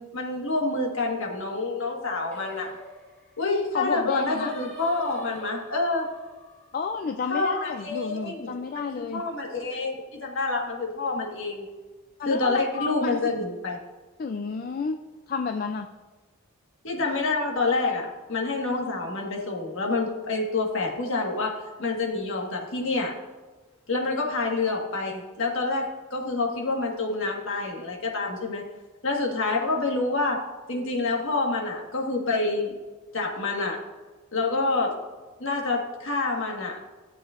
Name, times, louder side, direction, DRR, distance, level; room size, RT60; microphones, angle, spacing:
voice 1, 0.0-2.7 3.4-6.1 7.3-11.6 12.2-13.8 16.8-23.1 23.9-28.6 29.0-30.4 30.7-32.7 33.1-33.8 34.3-34.9 35.4-36.8, left 3 dB, 60° left, 0 dB, 1.5 m, -27 dB
Singing, 2.3-7.6, left 2 dB, 10° left, 1.7 m, -45 dB
voice 2, 3.7-4.5 6.7-9.2 12.2-13.4 14.2-15.0 15.3-15.9, left 5 dB, 40° left, 6 dB, 0.3 m, -31 dB
13.0 x 7.6 x 2.5 m, 1.2 s
head